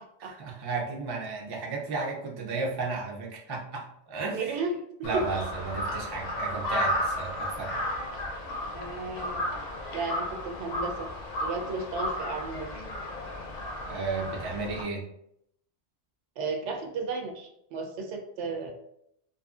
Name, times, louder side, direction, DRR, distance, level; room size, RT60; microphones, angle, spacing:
voice 1, 0.2-4.6 5.0-7.8 13.9-15.1, right 4 dB, 40° right, -1 dB, 0.3 m, -34 dB
voice 2, 4.3-4.7 5.0-5.2 8.7-9.5 9.9-11.1 11.4-12.8 16.4-18.7, right 3 dB, 85° right, 3 dB, 0.9 m, -34 dB
Crow, 5.0-14.8, left 1 dB, 50° left, 0.5 m, -33 dB
2.6 x 2.6 x 2.3 m, 0.73 s
omnidirectional pair, 1.2 m